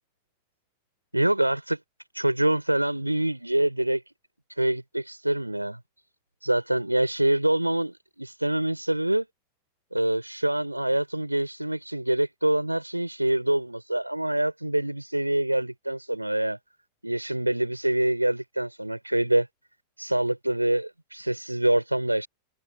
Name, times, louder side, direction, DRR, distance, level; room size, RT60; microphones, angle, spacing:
voice 1, 1.1-1.8 2.1-4.0 4.6-5.8 6.4-9.3 9.9-16.6 17.0-19.5 20.0-22.3, right 1 dB, 85° right, 5.0 m, -25 dB
figure-of-eight pair, 90°, 0 cm